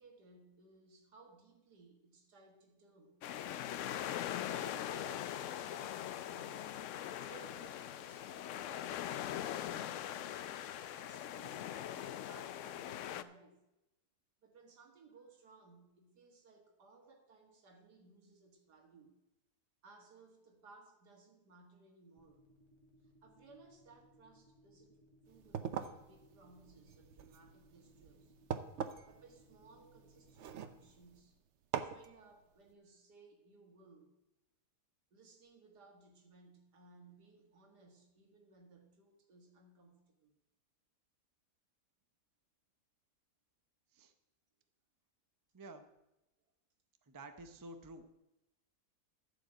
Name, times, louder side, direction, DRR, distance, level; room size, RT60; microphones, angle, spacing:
voice 1, 0.0-3.7 4.4-6.7 7.1-10.5 10.9-13.7 14.4-19.2 19.8-22.4 23.0-28.3 29.1-31.4 31.8-34.2 35.1-40.3 46.4-46.5, right 3 dB, 85° right, 3 dB, 2.2 m, -61 dB
sound 1, 3.2-13.2, left 11 dB, 70° left, 0.7 m, -41 dB
sound 2, 22.2-30.9, right 1 dB, 15° left, 1.7 m, -66 dB
sound 3, 25.3-31.2 31.7-32.1, right 8 dB, 60° right, 0.8 m, -43 dB
voice 2, 45.5-45.9 47.1-48.0, right 2 dB, 30° right, 8 dB, 0.4 m, -51 dB
12.0 x 5.1 x 7.6 m, 0.94 s
omnidirectional pair, 1.7 m